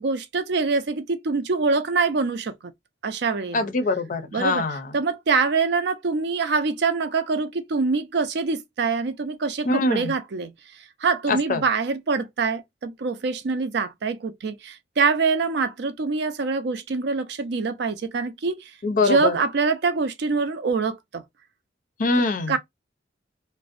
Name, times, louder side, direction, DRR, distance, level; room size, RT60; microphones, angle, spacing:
voice 1, 0.0-2.5 3.0-3.7 4.3-4.6 4.9-10.5 11.0-18.6 19.0-21.2 22.2-22.6, right 4 dB, 60° right, 0.4 m, -24 dB
voice 2, 3.5-4.9 9.7-10.1 11.3-11.6 18.8-19.4 22.0-22.6, left 3 dB, 45° left, 0.5 m, -23 dB
2.5 x 2.0 x 2.4 m
head